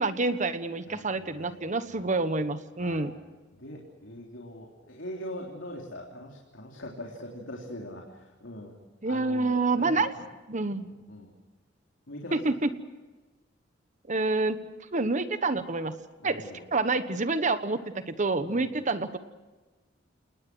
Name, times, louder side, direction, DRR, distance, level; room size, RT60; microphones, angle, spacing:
voice 1, 0.0-3.1 9.0-10.1 10.5-10.9 12.3-12.7 14.1-14.6 14.9-15.9 16.2-16.4 16.7-19.2, right 3 dB, 40° right, 11 dB, 1.2 m, -27 dB
voice 2, 0.9-2.0 2.8-3.1 3.5-8.8 9.0-10.2 10.8-11.3 12.1-12.5 16.2-16.6 18.5-18.7, left 1 dB, 80° left, -1 dB, 3.5 m, -42 dB
29.5 x 19.5 x 6.2 m, 1.2 s
head